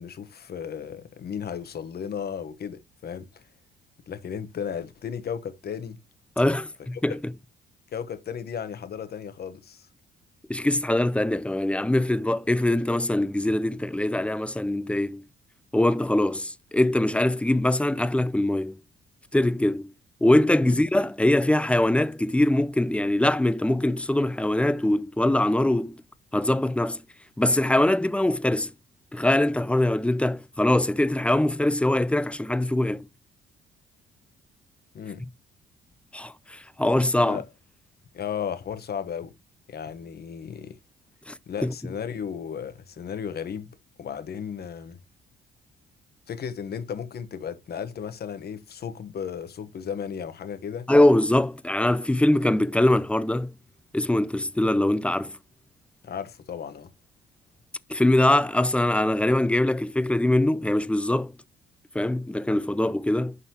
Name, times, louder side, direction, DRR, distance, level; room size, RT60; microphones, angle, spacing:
voice 1, 0.0-3.4 4.1-6.0 7.9-9.9 20.6-20.8 34.9-35.2 37.2-37.5 38.1-39.3 39.7-40.8 41.5-45.0 46.3-50.9 56.0-56.9, left 7 dB, 55° left, 1.1 m, -35 dB
voice 2, 6.4-7.2 10.5-15.2 15.7-18.8 19.3-19.9 20.2-26.0 26.3-27.0 27.4-28.7 29.1-33.0 36.1-37.4 41.3-41.4 41.6-41.7 50.9-53.5 53.9-55.3 57.9-61.3 61.9-63.4, left 1 dB, 5° left, 0.5 m, -22 dB
11.0 x 4.1 x 2.9 m
cardioid pair, 90°, 20 cm